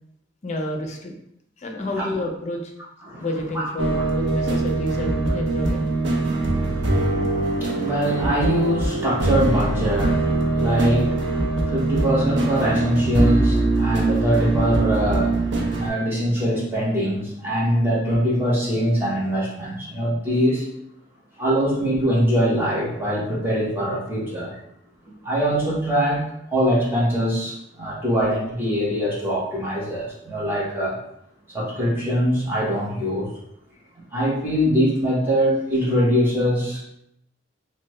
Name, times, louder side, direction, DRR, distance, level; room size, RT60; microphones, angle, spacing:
voice 1, 0.4-1.1 1.6-2.7 3.2-5.9, left 1 dB, 35° left, 2 dB, 0.5 m, -29 dB
sound 1, 3.8-15.9, right 2 dB, 60° right, 0.6 m, -22 dB
voice 2, 6.2-15.5 15.8-20.7 21.4-24.6 25.2-26.2 26.5-31.0 31.5-33.3 33.9-36.8, equal, 10° right, -7 dB, 0.9 m, -23 dB
3.2 x 2.1 x 3.1 m, 0.77 s
head